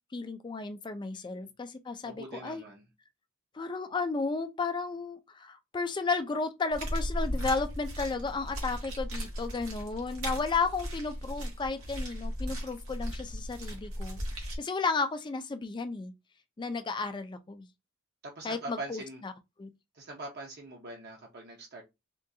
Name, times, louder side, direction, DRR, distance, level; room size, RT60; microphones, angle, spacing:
voice 1, 0.1-2.6 3.5-16.1 16.6-17.7 18.4-19.3 19.6-19.7, left 4 dB, 20° left, 0.3 m, -33 dB
voice 2, 2.0-2.8 18.2-19.2 19.9-21.8, right 2 dB, 50° right, 0.6 m, -43 dB
sound 1, 6.7-14.6, equal, 85° right, 1.2 m, -36 dB
3.6 x 2.3 x 2.6 m
head